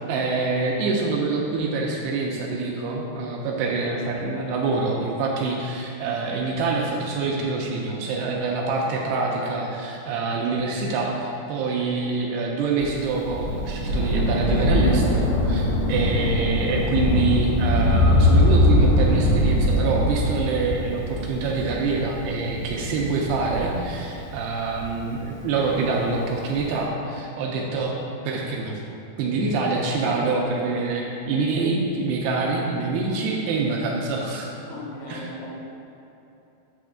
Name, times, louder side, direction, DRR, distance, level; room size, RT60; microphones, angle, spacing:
voice 1, 0.1-27.9 28.3-28.8 29.2-34.5 35.1-35.3, right 3 dB, 80° right, -1 dB, 2.4 m, -25 dB
Thunder, 12.8-25.7 26.6-26.7, left 1 dB, 70° left, 1.7 m, -22 dB
voice 2, 34.7-35.6, left 1 dB, 90° left, -6 dB, 4.0 m, -37 dB
8.5 x 3.5 x 6.4 m, 2.9 s
omnidirectional pair, 5.0 m